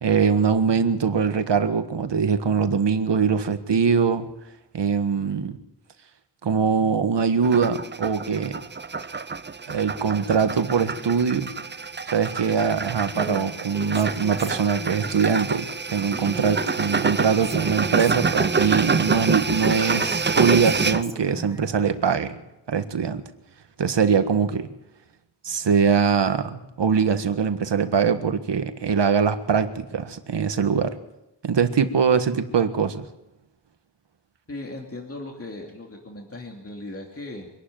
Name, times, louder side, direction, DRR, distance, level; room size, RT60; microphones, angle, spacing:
voice 1, 0.0-4.3 4.7-5.6 6.4-8.6 9.7-11.5 12.1-22.4 22.7-23.2 23.8-24.7 25.4-31.0 31.4-33.1, right 6 dB, 85° right, 9 dB, 1.6 m, -22 dB
sound 1, 7.4-21.0, right 4 dB, 25° right, 0.6 m, -27 dB
Female speech woman speaking, 13.1-15.2 16.2-19.1 19.9-21.8, right 1 dB, 5° right, 2.0 m, -38 dB
voice 2, 34.5-37.5, left 2 dB, 35° left, 1 dB, 2.8 m, -37 dB
25.0 x 12.0 x 9.3 m, 0.90 s
wide cardioid pair, 120°, 41 cm